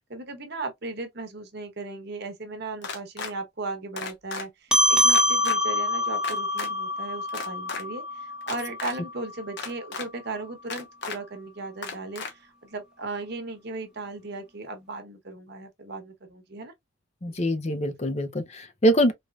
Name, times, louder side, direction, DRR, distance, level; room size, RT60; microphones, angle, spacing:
voice 1, 0.1-16.7 17.3-17.4, right 3 dB, 50° right, 1.0 m, -37 dB
sound 1, 2.8-3.3 4.0-4.4 5.1-5.6 6.2-6.7 7.3-7.8 8.4-8.9 9.6-10.1 10.7-11.2 11.8-12.3, left 4 dB, 55° left, 1.0 m, -34 dB
sound 2, 4.7-9.5, equal, 5° right, 0.8 m, -25 dB
voice 2, 17.2-19.1, equal, 30° left, 0.6 m, -24 dB
4.3 x 3.1 x 2.3 m
head